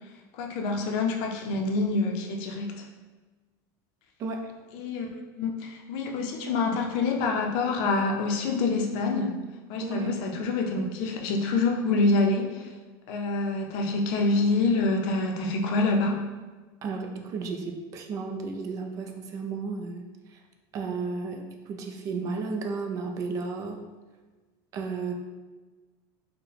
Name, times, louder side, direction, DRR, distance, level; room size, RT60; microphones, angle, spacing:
voice 1, 0.3-2.8 4.7-9.4 9.7-12.7 13.1-16.3, left 3 dB, 55° left, 2 dB, 0.5 m, -26 dB
voice 2, 4.2-4.5 9.8-10.1 16.8-20.0 20.3-20.4 20.7-23.8 24.7-25.1, right 4 dB, 30° right, 3 dB, 0.4 m, -33 dB
4.5 x 2.1 x 3.3 m, 1.3 s
cardioid pair, 165°, 11 cm